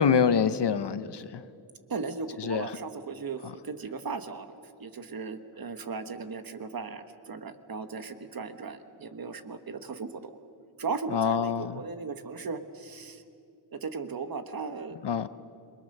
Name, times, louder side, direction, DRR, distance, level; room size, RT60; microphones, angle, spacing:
voice 1, 0.0-1.4 2.4-2.7 11.1-11.8 15.0-15.3, left 6 dB, 55° left, 0.8 m, -25 dB
voice 2, 1.9-4.5 4.8-10.4 10.8-13.2 13.7-15.0, right 4 dB, 45° right, 1.3 m, -37 dB
28.0 x 23.0 x 6.7 m
wide cardioid pair, 180°, 49 cm